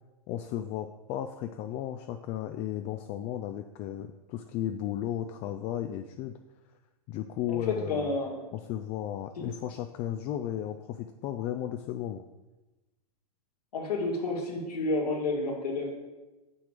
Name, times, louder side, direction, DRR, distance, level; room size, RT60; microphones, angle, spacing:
voice 1, 0.3-6.4 7.1-8.1 8.5-12.2, left 11 dB, 35° left, 7 dB, 0.4 m, -34 dB
voice 2, 7.5-8.5 9.4-9.5 13.7-15.9, left 2 dB, 85° left, -1 dB, 2.2 m, -30 dB
7.4 x 6.1 x 4.9 m, 1.1 s
hypercardioid pair, 125°, 19 cm